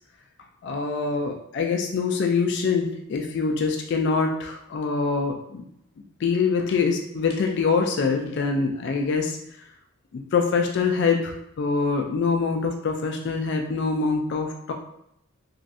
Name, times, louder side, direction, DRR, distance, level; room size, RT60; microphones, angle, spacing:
voice 1, 0.6-5.6 6.2-9.4 10.1-14.7, left 4 dB, 55° left, 3 dB, 0.3 m, -24 dB
3.1 x 2.5 x 2.5 m, 0.78 s
head